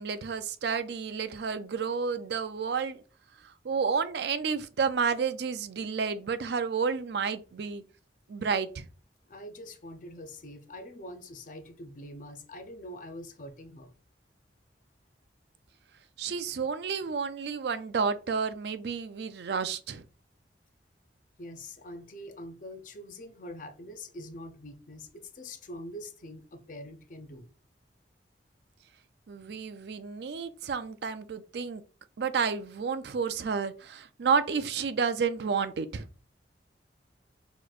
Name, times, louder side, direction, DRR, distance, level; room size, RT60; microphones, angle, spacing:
voice 1, 0.0-3.0 3.6-7.8 8.3-8.9 16.2-20.0 29.3-31.8 32.2-36.1, right 5 dB, 65° right, 0.4 m, -30 dB
voice 2, 9.3-13.9 21.4-27.5, left 1 dB, 45° left, 0.6 m, -44 dB
6.1 x 3.0 x 2.4 m
head